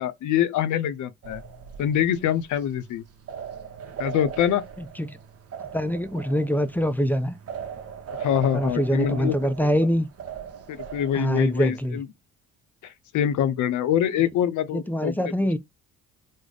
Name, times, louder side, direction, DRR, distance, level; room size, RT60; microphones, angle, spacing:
voice 1, 0.0-1.4 1.8-3.0 4.0-4.6 8.2-9.4 10.7-12.1 12.8-15.5, left 10 dB, 75° left, 0.6 m, -25 dB
sound 1, 1.2-11.9, right 7 dB, 50° right, 0.7 m, -39 dB
voice 2, 4.8-5.2 5.7-7.4 8.5-10.1 11.2-12.0 14.7-15.6, equal, 5° left, 0.3 m, -24 dB
3.4 x 2.0 x 3.8 m
cardioid pair, 90°, 30 cm